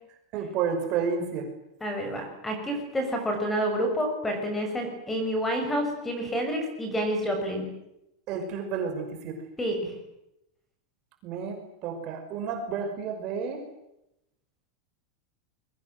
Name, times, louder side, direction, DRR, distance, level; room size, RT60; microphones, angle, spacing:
voice 1, 0.3-1.5 8.3-9.4 11.2-13.6, right 6 dB, 30° right, 4 dB, 5.6 m, -31 dB
voice 2, 1.8-7.6 9.6-9.9, equal, 5° left, 4 dB, 6.4 m, -29 dB
28.5 x 23.0 x 7.9 m, 0.84 s
supercardioid pair, 180°, 2 cm